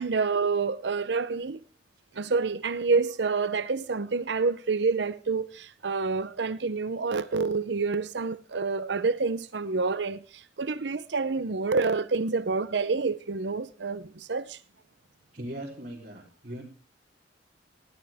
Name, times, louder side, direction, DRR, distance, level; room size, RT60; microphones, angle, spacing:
voice 1, 0.0-1.6 2.1-14.6, right 4 dB, 70° right, 0.7 m, -28 dB
voice 2, 15.3-16.6, right 1 dB, 45° right, 3.5 m, -39 dB
20.0 x 15.5 x 3.5 m
head